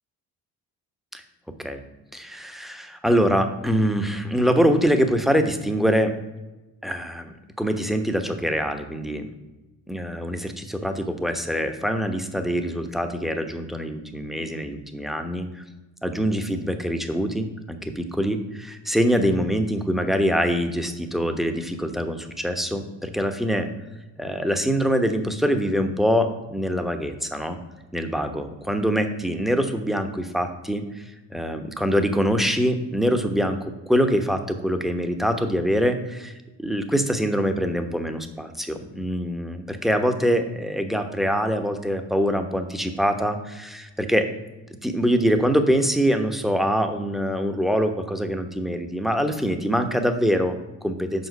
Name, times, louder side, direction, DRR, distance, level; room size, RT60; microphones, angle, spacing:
voice 1, 2.1-6.1 6.8-9.3 9.9-15.6 16.0-23.7 24.2-27.6 27.9-31.0 31.3-33.6 33.9-36.3 36.6-44.3 44.8-51.3, equal, ahead, 7 dB, 1.0 m, -24 dB
5.6 x 5.3 x 5.2 m, 1.1 s
hypercardioid pair, 50°, 49 cm